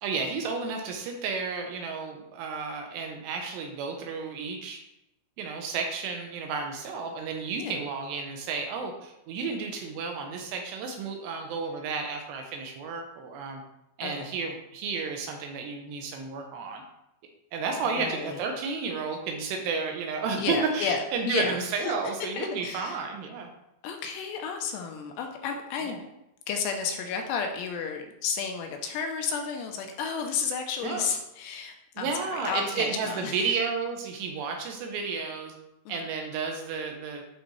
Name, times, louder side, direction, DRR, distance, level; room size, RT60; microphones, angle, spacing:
voice 1, 0.0-4.8 5.4-13.6 14.0-16.8 17.5-23.5 25.8-26.0 30.8-31.1 32.0-35.5 35.9-37.2, right 5 dB, 80° right, 3 dB, 2.8 m, -32 dB
voice 2, 18.0-18.4 20.3-21.9 22.2-23.0 23.8-26.0 26.5-33.4 35.9-36.0, left 6 dB, 80° left, 3 dB, 2.7 m, -32 dB
11.5 x 4.1 x 3.2 m, 0.87 s
omnidirectional pair, 5.2 m